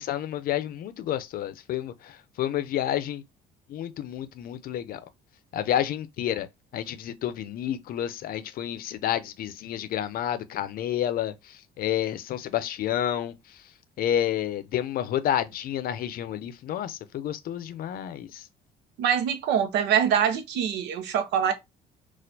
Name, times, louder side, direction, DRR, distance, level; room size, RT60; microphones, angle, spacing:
voice 1, 0.0-2.1 2.4-3.2 3.7-5.0 5.5-6.5 6.7-11.3 11.8-13.3 14.0-18.4, left 11 dB, 60° left, 0.5 m, -29 dB
voice 2, 19.0-21.5, right 8 dB, 85° right, 0.7 m, -24 dB
4.2 x 2.4 x 2.7 m
cardioid pair, 110°, 17 cm